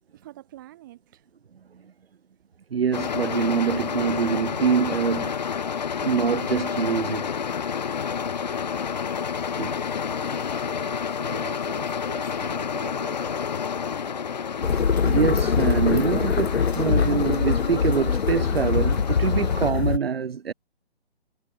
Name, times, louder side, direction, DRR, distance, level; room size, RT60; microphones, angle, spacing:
voice 1, 0.1-1.3 10.2-13.3, right 15 dB, 20° right, 3.4 m, -44 dB
voice 2, 2.7-5.4 6.0-7.2 9.6-9.8 15.0-20.5, right 7 dB, 65° right, 0.9 m, -25 dB
sound 1, 2.9-19.7, left 7 dB, 40° left, 2.6 m, -30 dB
sound 2, 14.6-20.0, left 6 dB, 70° left, 1.4 m, -23 dB
hypercardioid pair, 175°, 33 cm